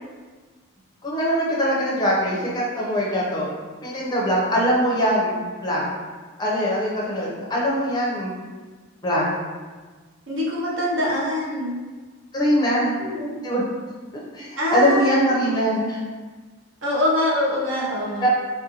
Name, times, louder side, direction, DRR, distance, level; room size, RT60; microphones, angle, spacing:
voice 1, 1.0-3.5 3.8-5.3 5.6-5.9 6.4-8.3 9.0-9.3 12.3-12.9 13.4-13.6 14.3-16.0 18.2-18.3, equal, 20° left, -5 dB, 0.5 m, -22 dB
voice 2, 10.3-11.8 13.0-13.4 14.6-15.1 16.8-18.2, left 1 dB, 60° right, -4 dB, 0.7 m, -24 dB
3.5 x 2.5 x 2.8 m, 1.4 s
head